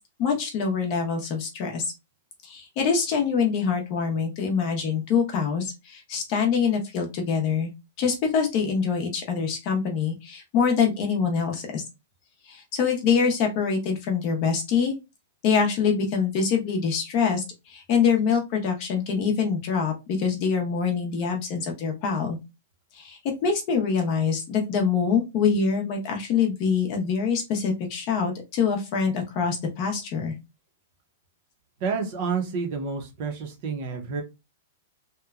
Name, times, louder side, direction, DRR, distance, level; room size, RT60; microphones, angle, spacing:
voice 1, 0.2-1.8 2.4-7.7 8.0-11.8 12.5-14.9 15.4-22.4 22.9-30.3, left 6 dB, 30° left, 2 dB, 0.6 m, -25 dB
voice 2, 31.8-34.2, right 5 dB, 35° right, 3 dB, 0.7 m, -29 dB
2.8 x 2.1 x 2.3 m, 0.24 s
supercardioid pair, 175°, 0 cm